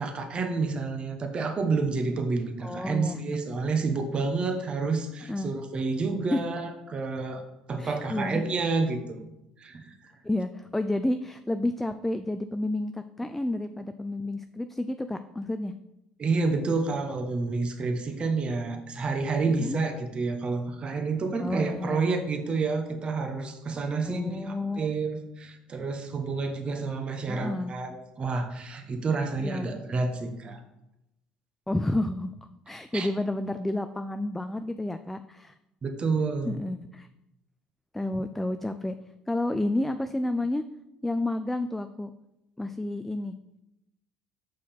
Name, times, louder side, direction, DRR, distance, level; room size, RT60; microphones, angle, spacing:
voice 1, 0.0-7.4 7.7-9.2 9.6-10.1 16.2-30.6 32.9-33.1 35.8-36.6, right 4 dB, 35° right, 5 dB, 1.0 m, -29 dB
voice 2, 2.6-3.2 5.3-5.5 6.3-6.4 7.8-8.4 10.2-15.7 19.6-19.8 21.4-22.1 24.1-24.9 27.3-27.7 29.4-29.7 31.7-32.3 32.7-35.5 36.4-37.1 37.9-38.9 39.3-40.6 41.0-42.1 42.6-43.3, left 1 dB, 5° left, 9 dB, 0.3 m, -30 dB
5.7 x 4.9 x 4.3 m, 0.89 s
supercardioid pair, 75°, 3 cm